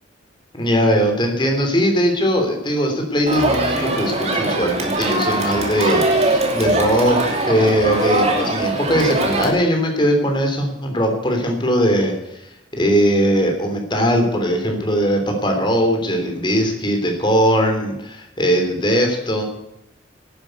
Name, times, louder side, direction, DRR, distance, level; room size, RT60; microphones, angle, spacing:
voice 1, 0.5-19.4, equal, 25° left, 3 dB, 3.2 m, -20 dB
Crowd, 3.3-9.5, right 2 dB, 35° right, 2.7 m, -21 dB
11.5 x 10.5 x 8.0 m, 0.87 s
head